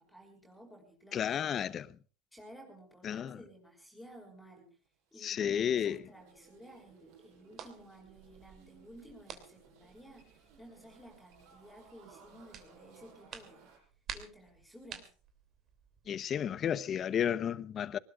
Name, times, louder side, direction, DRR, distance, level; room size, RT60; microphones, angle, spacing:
voice 1, 0.0-1.8 2.3-4.7 5.1-13.7 14.1-15.1, right 1 dB, 5° left, 5.7 m, -54 dB
voice 2, 1.1-1.9 3.0-3.4 5.2-6.0 16.1-18.0, left 9 dB, 30° left, 0.9 m, -32 dB
sound 1, 4.9-13.8, right 6 dB, 60° right, 7.5 m, -61 dB
sound 2, 5.4-16.7, right 7 dB, 35° right, 2.9 m, -53 dB
24.5 x 20.0 x 2.4 m
supercardioid pair, 150°, 0 cm